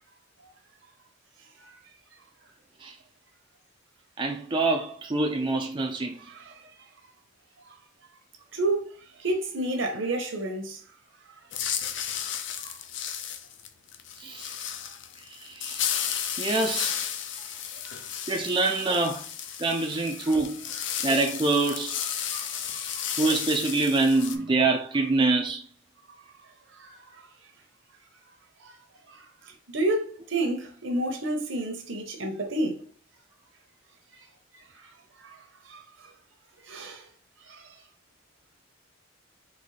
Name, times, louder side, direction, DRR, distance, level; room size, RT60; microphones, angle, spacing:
voice 1, 4.2-6.2 14.2-14.6 15.2-16.1 16.4-17.0 18.3-19.3 19.6-20.7 21.0-22.0 23.2-25.7, right 3 dB, 25° right, 0.4 m, -25 dB
voice 2, 8.5-8.9 9.2-10.8 12.6-12.7 17.8-18.0 22.2-23.0 26.8-26.9 28.6-28.7 29.1-29.2 29.7-32.9 35.2-35.4 35.7-35.8 36.7-37.1 37.5-37.6, right 2 dB, 70° right, 0.9 m, -30 dB
sound 1, 11.5-24.4, left 9 dB, 60° left, 0.5 m, -33 dB
4.1 x 3.1 x 3.2 m
head